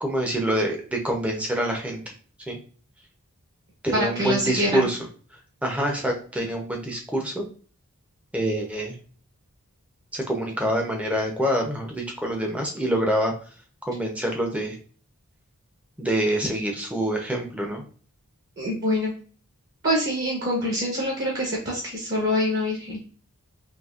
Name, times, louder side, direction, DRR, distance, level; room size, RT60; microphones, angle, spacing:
voice 1, 0.0-2.0 2.5-2.6 3.8-5.0 5.6-7.4 8.3-9.0 10.1-13.3 13.9-14.7 16.0-17.8, right 1 dB, 5° right, 1 dB, 0.6 m, -26 dB
voice 2, 3.9-4.8 18.6-19.1 19.8-23.0, equal, 45° right, -4 dB, 1.0 m, -25 dB
4.2 x 2.8 x 2.4 m, 0.41 s
head